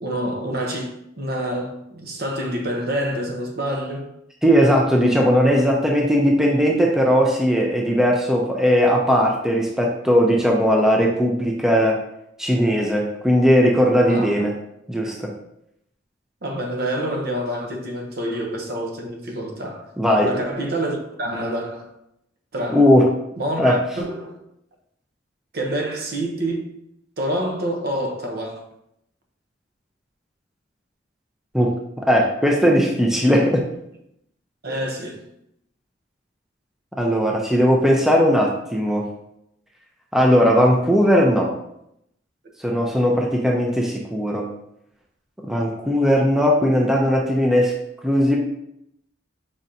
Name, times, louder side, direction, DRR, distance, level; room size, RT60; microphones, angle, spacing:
voice 1, 0.0-4.1 14.1-14.5 16.4-19.9 20.2-21.9 22.5-22.9 23.4-24.4 25.5-26.7 27.2-28.6 34.6-35.2, right 1 dB, 55° right, 0.9 m, -27 dB
voice 2, 4.4-12.0 12.4-14.6 14.9-15.3 20.0-20.3 22.7-23.1 23.6-23.8 31.5-31.7 32.0-33.6 37.0-39.1 40.1-41.5 42.6-44.5 45.5-47.7 48.0-48.4, equal, 5° right, 0.5 m, -18 dB
5.1 x 3.8 x 2.7 m
head